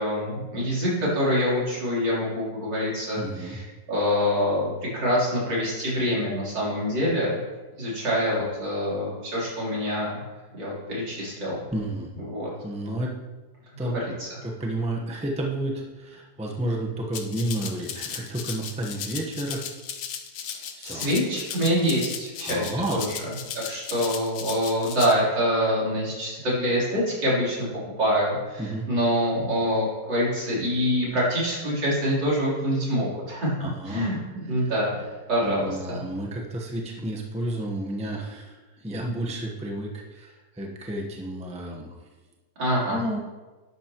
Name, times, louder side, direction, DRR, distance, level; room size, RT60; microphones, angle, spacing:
voice 1, 0.0-7.4 7.8-10.2 10.5-11.6 12.2-12.5 13.9-14.4 20.8-23.3 23.7-27.7 28.0-33.5 33.8-35.0 35.3-36.0 42.6-43.0, equal, 75° right, -7 dB, 4.5 m, -25 dB
voice 2, 3.2-3.6 11.7-12.1 12.6-13.1 13.8-14.0 14.4-19.6 20.8-21.1 22.4-23.0 28.6-28.8 33.6-34.1 34.6-34.7 35.4-38.6 38.8-41.9 42.9-43.2, right 1 dB, 5° right, -1 dB, 0.9 m, -31 dB
Rattle (instrument), 17.1-25.1, left 8 dB, 90° left, 1.6 m, -36 dB
12.0 x 10.5 x 3.1 m, 1.2 s
omnidirectional pair, 2.0 m